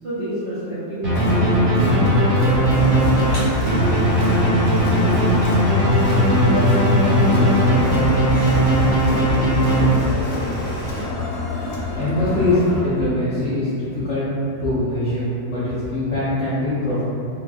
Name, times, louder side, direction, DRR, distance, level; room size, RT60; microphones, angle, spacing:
voice 1, 0.0-5.6 6.4-10.7, right 1 dB, 75° right, -15 dB, 0.4 m, -30 dB
sound 1, 1.0-10.4, equal, 50° right, 1.0 m, -18 dB
Crowd, 1.1-12.8, left 2 dB, 85° left, 1.3 m, -28 dB
sound 2, 2.7-11.0, left 1 dB, 40° left, 1.2 m, -33 dB
voice 2, 11.9-14.3 14.6-17.0, left 1 dB, 60° left, -12 dB, 0.7 m, -22 dB
4.0 x 2.6 x 2.3 m, 2.6 s
omnidirectional pair, 2.0 m